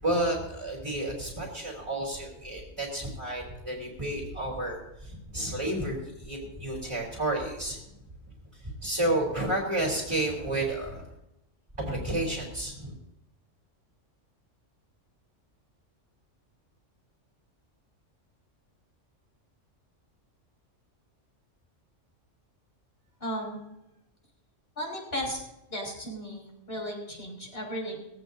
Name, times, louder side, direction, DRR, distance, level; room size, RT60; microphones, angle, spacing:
voice 1, 0.0-7.8 8.5-11.1 11.8-12.9, right 1 dB, 25° right, -3 dB, 3.7 m, -31 dB
voice 2, 23.2-23.6 24.7-25.4 25.7-28.0, equal, 50° left, -1 dB, 6.5 m, -35 dB
21.5 x 16.0 x 2.7 m, 0.87 s
omnidirectional pair, 1.3 m